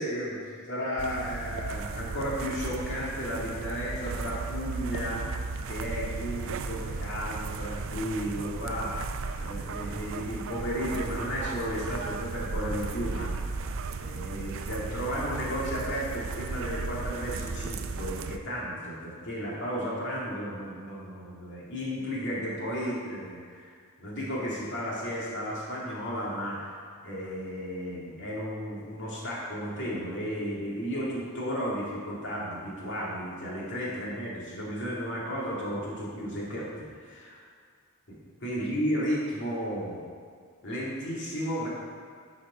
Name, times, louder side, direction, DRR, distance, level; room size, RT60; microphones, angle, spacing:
voice 1, 0.0-5.2 5.7-9.1 9.4-13.5 14.0-37.4 38.1-40.0 40.6-41.7, equal, 55° left, -6 dB, 2.4 m, -34 dB
sound 1, 1.0-18.4, right 4 dB, 65° right, 0.4 m, -35 dB
10.0 x 5.1 x 5.1 m, 2.1 s
head